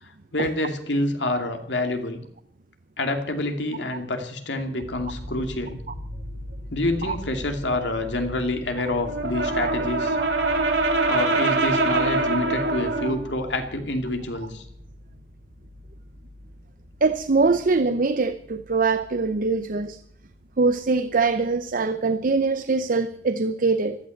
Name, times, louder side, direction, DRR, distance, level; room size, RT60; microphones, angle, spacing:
voice 1, 0.0-2.2 3.0-5.8 6.7-10.2 11.1-14.6, left 2 dB, 70° left, 5 dB, 2.6 m, -27 dB
sound 1, 4.8-21.9 22.2-22.5, left 1 dB, 5° left, 5.9 m, -42 dB
Brass instrument, 9.0-13.2, right 2 dB, 85° right, 3.4 m, -23 dB
voice 2, 17.0-20.0 20.6-24.0, right 4 dB, 50° right, 11 dB, 0.7 m, -23 dB
14.5 x 12.5 x 7.9 m, 0.67 s
head